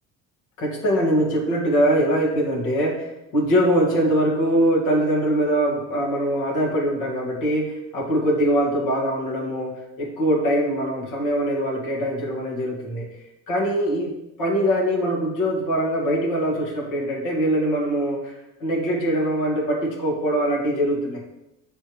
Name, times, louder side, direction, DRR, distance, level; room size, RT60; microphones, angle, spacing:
voice 1, 0.6-9.7 10.0-13.1 13.5-14.1 14.4-18.3 18.6-21.2, equal, 80° left, -2 dB, 2.0 m, -22 dB
9.3 x 3.4 x 3.1 m, 0.92 s
cardioid pair, 135°, 31 cm